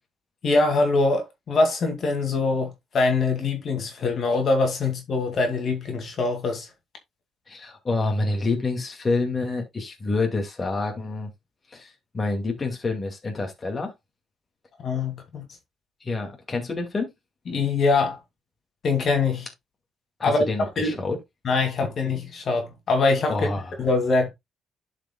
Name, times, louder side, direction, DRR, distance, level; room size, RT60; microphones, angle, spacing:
voice 1, 0.4-6.7 14.8-15.4 17.5-18.2 18.8-19.5 20.2-20.4 20.8-21.0 21.4-23.5 23.8-24.3, left 3 dB, 55° left, 2.3 m, -23 dB
voice 2, 7.5-11.3 11.7-13.9 16.0-17.1 20.2-21.2 23.3-23.7, left 3 dB, 30° left, 2.1 m, -27 dB
12.0 x 5.1 x 2.3 m
cardioid pair, 90°, 0 cm